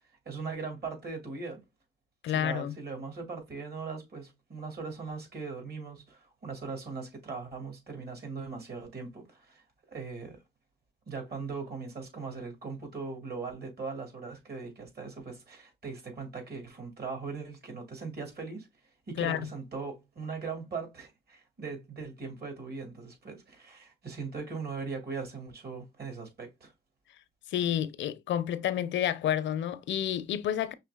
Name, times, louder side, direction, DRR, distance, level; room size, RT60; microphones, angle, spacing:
voice 1, 0.3-1.6 2.3-9.6 9.9-10.4 11.1-18.7 19.1-26.7, right 4 dB, 55° right, 2.4 m, -39 dB
voice 2, 2.2-2.7 19.2-19.4 27.5-30.7, left 10 dB, 70° left, 0.5 m, -29 dB
5.7 x 3.3 x 2.3 m
cardioid pair, 90°, 20 cm